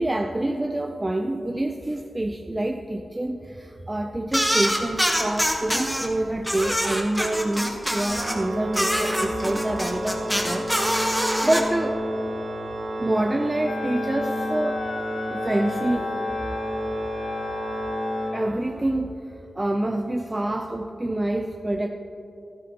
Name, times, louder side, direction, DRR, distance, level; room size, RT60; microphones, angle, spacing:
voice 1, 0.0-10.7 11.4-12.0 13.0-14.9 15.3-16.1 18.3-19.1 19.6-21.9, right 1 dB, 15° right, 3 dB, 0.4 m, -26 dB
sound 1, 4.3-6.1 6.4-8.4 8.7-11.6, equal, ahead, 1.1 m, -24 dB
Organ, 8.1-19.0, equal, 50° right, 1.0 m, -31 dB
Wind instrument woodwind instrument, 13.6-18.4, left 5 dB, 65° left, 0.4 m, -34 dB
15.5 x 13.0 x 2.9 m, 2.8 s
wide cardioid pair, 145°, 0 cm